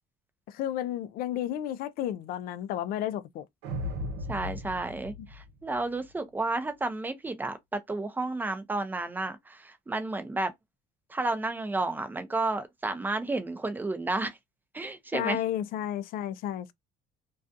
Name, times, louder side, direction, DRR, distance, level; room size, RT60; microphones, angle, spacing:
voice 1, 0.5-3.5 15.1-16.7, left 11 dB, 60° left, 0.4 m, -32 dB
sound 1, 3.6-6.1, left 1 dB, 85° right, 0.6 m, -37 dB
voice 2, 4.3-10.5 11.1-14.4 14.7-15.4, right 2 dB, 10° right, 0.5 m, -31 dB
2.4 x 2.3 x 2.5 m
cardioid pair, 130°, 17 cm